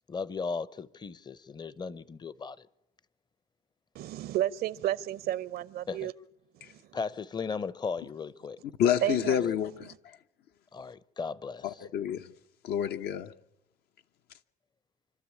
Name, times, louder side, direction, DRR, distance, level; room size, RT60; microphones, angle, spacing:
voice 1, 0.1-2.7 5.9-6.1 6.9-8.6 10.7-11.9, left 5 dB, 25° left, 0.7 m, -36 dB
voice 2, 3.9-6.1 6.5-6.8 9.0-9.4, right 12 dB, 65° right, 0.7 m, -32 dB
voice 3, 8.8-9.9 11.6-12.3 12.6-13.3, left 9 dB, 70° left, 1.0 m, -28 dB
26.5 x 12.5 x 8.5 m
cardioid pair, 110°, 17 cm